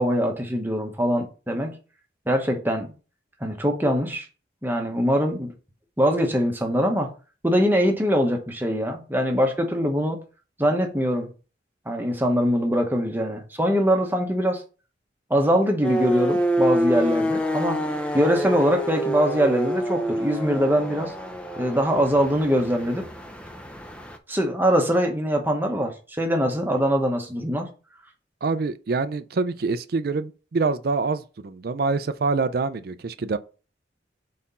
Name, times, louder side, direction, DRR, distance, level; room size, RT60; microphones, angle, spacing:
voice 1, 0.0-1.8 2.3-2.9 3.4-4.3 4.6-5.5 6.0-7.1 7.4-10.2 10.6-11.3 11.9-14.6 15.3-17.8 18.1-21.1 21.6-23.1 24.3-27.7, equal, 10° right, 1.0 m, -22 dB
sound 1, 15.8-24.2, equal, 5° left, 0.5 m, -27 dB
voice 2, 28.4-33.4, right 4 dB, 55° right, 0.4 m, -25 dB
4.3 x 4.2 x 5.3 m
head